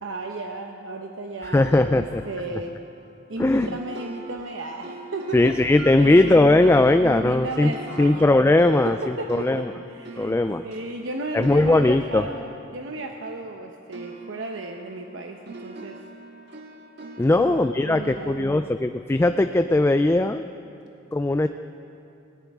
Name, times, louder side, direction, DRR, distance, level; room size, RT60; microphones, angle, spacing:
voice 1, 0.0-2.8 3.3-5.6 6.0-6.5 7.0-8.4 8.8-16.0 17.3-18.5, right 2 dB, 85° right, 3 dB, 0.9 m, -34 dB
voice 2, 1.4-2.2 3.4-3.7 5.3-7.7 8.0-9.7 10.2-10.6 11.3-12.3 17.2-20.4 21.1-21.5, left 2 dB, 15° left, 9 dB, 0.3 m, -19 dB
sound 1, 1.6-13.6 13.9-19.1, right 2 dB, 60° right, 1.5 m, -43 dB
19.5 x 18.5 x 3.6 m, 2.6 s
head